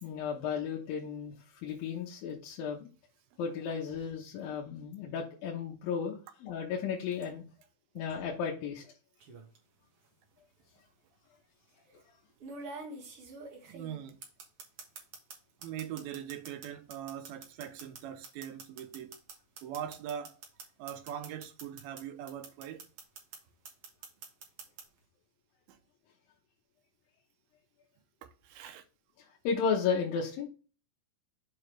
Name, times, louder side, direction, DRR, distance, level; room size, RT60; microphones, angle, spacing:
voice 1, 0.0-1.3 1.6-2.9 3.4-7.4 8.0-8.9 29.2-30.5, left 6 dB, 75° left, 2.7 m, -34 dB
sound 1, 9.2-9.6 10.8-10.9 12.4-15.4 15.6-22.0 22.3-23.4 23.6-24.8, right 3 dB, 55° right, 1.7 m, -46 dB
voice 2, 13.7-14.2 15.6-19.2 19.6-20.4 20.8-22.9 25.7-25.8 28.2-28.8, right 10 dB, 90° right, 2.6 m, -41 dB
7.1 x 4.8 x 3.2 m
omnidirectional pair, 4.3 m